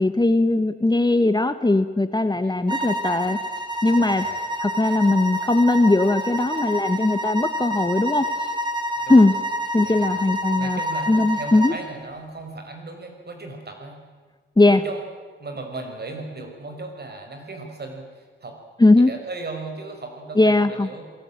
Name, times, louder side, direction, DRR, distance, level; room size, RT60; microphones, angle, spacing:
voice 1, 0.0-3.4 3.8-4.3 4.6-8.3 9.1-9.3 9.7-10.8 11.1-11.7 14.6-14.8 18.8-19.1 20.4-20.9, left 2 dB, 20° left, 11 dB, 1.3 m, -19 dB
sound 1, 2.7-11.8, equal, 20° right, 3.4 m, -28 dB
voice 2, 4.0-4.4 9.0-9.3 9.8-10.2 10.6-14.0 14.7-15.0 15.4-18.6 19.1-21.0, right 3 dB, 55° right, 4 dB, 5.7 m, -36 dB
27.5 x 18.0 x 8.9 m, 1.5 s
cardioid pair, 75°, 20 cm